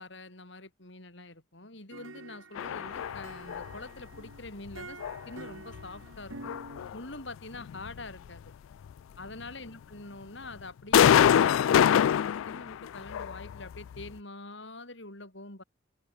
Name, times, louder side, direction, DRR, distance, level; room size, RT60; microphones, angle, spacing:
voice 1, 0.0-5.0 5.3-6.6 6.9-8.5 9.2-15.6, left 2 dB, 60° left, 5.1 m, -45 dB
sound 1, 1.9-6.9, right 2 dB, 80° right, 5.7 m, -48 dB
sound 2, 2.6-3.8 4.7-5.2 5.7-5.8 6.4-7.0 7.5-8.0 8.9-9.0 10.9-14.1, left 9 dB, 80° left, 0.3 m, -24 dB
open air
head